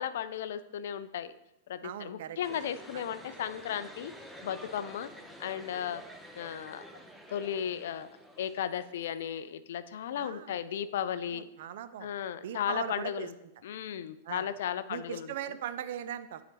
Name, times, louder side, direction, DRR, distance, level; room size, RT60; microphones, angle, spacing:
voice 1, 0.0-1.3 1.7-4.1 4.4-5.1 5.4-6.0 6.3-7.0 7.3-8.1 8.4-11.5 12.0-13.3 13.6-15.3, left 9 dB, 60° left, 14 dB, 0.3 m, -35 dB
voice 2, 1.8-2.4 2.9-3.0 10.2-10.6 11.3-12.1 12.4-13.3 14.2-14.5 14.9-16.4, right 10 dB, 55° right, 12 dB, 0.4 m, -39 dB
sound 1, 2.4-9.5, right 1 dB, 5° right, 0.7 m, -50 dB
9.4 x 3.9 x 3.2 m, 0.89 s
figure-of-eight pair, 95°, 0 cm